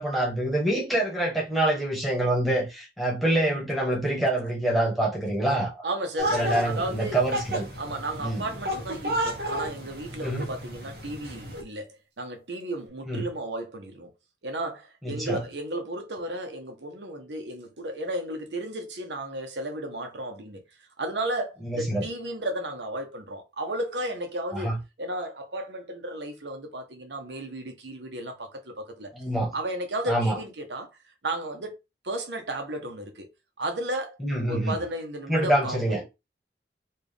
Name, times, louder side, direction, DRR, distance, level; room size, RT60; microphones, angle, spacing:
voice 1, 0.0-5.7 6.3-7.7 8.2-8.4 10.2-10.4 13.1-13.2 15.0-15.4 21.7-22.0 24.5-24.7 29.2-29.5 30.1-30.4 34.2-34.8 35.3-36.0, right 1 dB, ahead, 1.3 m, -26 dB
voice 2, 5.8-7.2 7.8-14.1 14.4-29.1 29.5-30.9 31.2-31.8 32.0-33.3 33.6-34.2 34.5-36.0, right 1 dB, 80° right, 1.0 m, -34 dB
sound 1, 6.2-11.6, right 1 dB, 60° right, 1.2 m, -32 dB
4.4 x 2.5 x 3.5 m
head